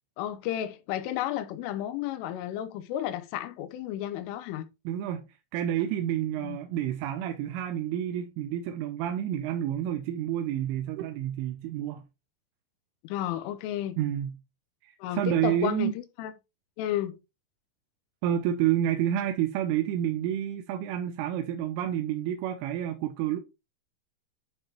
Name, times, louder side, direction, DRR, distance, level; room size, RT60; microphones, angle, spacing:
voice 1, 0.2-4.7 6.4-6.6 13.0-14.0 15.0-15.9 16.2-16.3 16.8-17.2, left 12 dB, 85° left, 3.3 m, -32 dB
voice 2, 4.9-12.0 14.0-14.3 14.8-15.9 18.2-23.4, right 11 dB, 85° right, 3.3 m, -29 dB
10.0 x 5.9 x 3.0 m
omnidirectional pair, 5.7 m